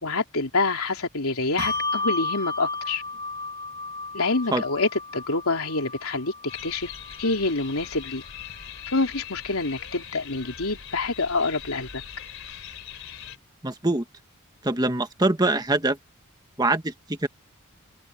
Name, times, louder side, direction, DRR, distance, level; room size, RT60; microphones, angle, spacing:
voice 1, 0.0-3.0 4.1-6.3 6.6-6.9 7.2-8.2 8.9-12.0, left 3 dB, 85° left, 3.3 m, -26 dB
Bell, 1.6-8.4, left 3 dB, 50° right, 2.8 m, -33 dB
sound 1, 6.5-13.4, left 8 dB, 65° left, 4.3 m, -41 dB
voice 2, 13.6-14.0 14.6-16.0 16.6-17.3, right 2 dB, 20° right, 1.5 m, -23 dB
open air
head